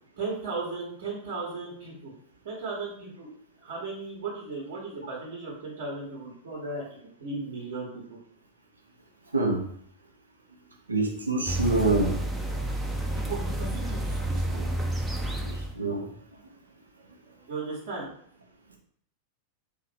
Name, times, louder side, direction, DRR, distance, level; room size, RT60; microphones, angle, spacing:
voice 1, 0.2-2.1 2.4-3.3 3.6-6.8 7.2-8.2 13.1-14.6 17.5-18.0, right 3 dB, 55° right, -5 dB, 1.1 m, -36 dB
voice 2, 10.9-12.2 14.6-14.7 15.5-16.1, right 2 dB, 80° right, 1 dB, 0.7 m, -26 dB
sound 1, 11.5-15.8, right 1 dB, 10° right, 0.5 m, -30 dB
2.9 x 2.5 x 4.2 m, 0.62 s
figure-of-eight pair, 90°, 0 cm